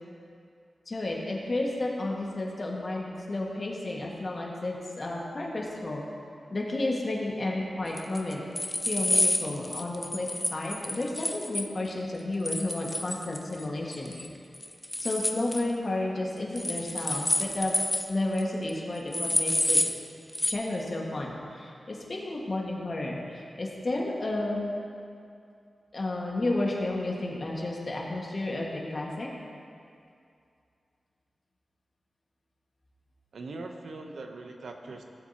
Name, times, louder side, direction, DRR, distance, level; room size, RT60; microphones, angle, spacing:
voice 1, 0.9-6.0 6.5-8.4 8.9-14.1 15.0-17.7 18.1-19.8 20.5-24.7 25.9-29.3, left 2 dB, 45° left, -2 dB, 1.7 m, -32 dB
sound 1, 8.0-11.7 12.5-13.6 13.9-14.3 14.5-15.6 16.6-18.1 18.4-18.5 18.7-18.8 19.1-20.0 20.3-20.5, left 1 dB, 15° left, 0.7 m, -28 dB
voice 2, 33.3-35.0, right 3 dB, 85° right, 3 dB, 0.8 m, -41 dB
16.5 x 7.4 x 2.9 m, 2.4 s
wide cardioid pair, 75°, 0 cm